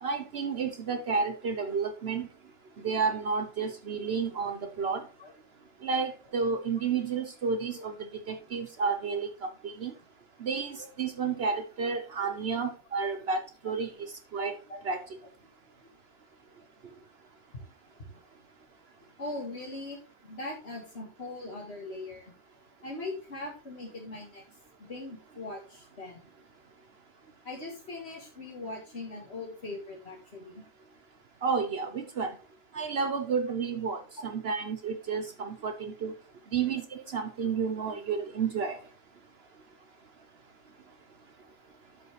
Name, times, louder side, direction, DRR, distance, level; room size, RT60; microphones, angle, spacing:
voice 1, 0.0-2.3 2.8-5.0 5.8-7.9 8.3-9.3 9.6-9.9 10.4-13.9 14.3-14.5 14.8-15.0 31.4-32.3 32.7-36.1 36.5-38.8, right 5 dB, 60° right, 7 dB, 1.1 m, -31 dB
voice 2, 19.2-22.3 22.8-24.4 24.8-26.2 27.4-30.6, left 2 dB, 65° left, -2 dB, 2.1 m, -40 dB
11.5 x 5.5 x 3.2 m, 0.33 s
omnidirectional pair, 1.2 m